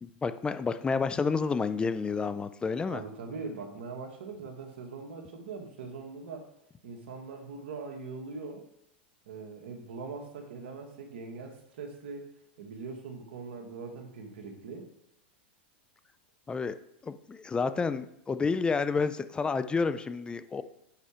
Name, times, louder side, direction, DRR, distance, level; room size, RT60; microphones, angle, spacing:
voice 1, 0.0-3.0 16.5-16.7 17.0-20.6, left 4 dB, 15° left, 11 dB, 0.4 m, -30 dB
voice 2, 2.9-6.5 6.8-8.6 9.3-12.2 12.6-14.9, right 4 dB, 75° right, 3 dB, 1.8 m, -41 dB
7.7 x 4.8 x 4.4 m, 0.79 s
hypercardioid pair, 115°, 6 cm